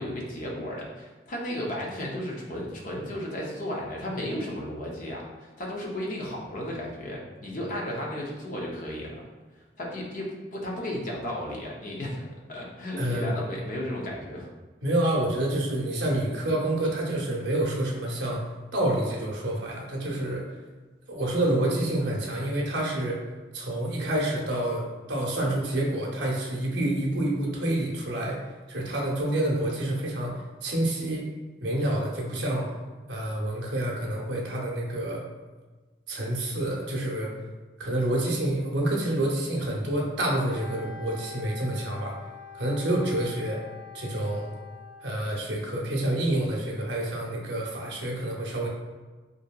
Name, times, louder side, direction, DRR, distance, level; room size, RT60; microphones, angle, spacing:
voice 1, 0.0-9.2 9.8-14.5, left 1 dB, 45° left, -3 dB, 0.6 m, -34 dB
voice 2, 13.0-13.3 14.8-18.4 18.7-20.4 21.1-23.2 23.5-28.4 28.7-31.3 31.6-32.7 33.1-35.2 36.1-37.3 37.8-42.1 42.5-43.6 43.9-44.5 45.0-48.7, right 1 dB, 75° right, -2 dB, 0.6 m, -28 dB
Wind instrument woodwind instrument, 40.4-45.3, left 4 dB, 65° left, 1.1 m, -45 dB
2.8 x 2.6 x 2.3 m, 1.3 s
head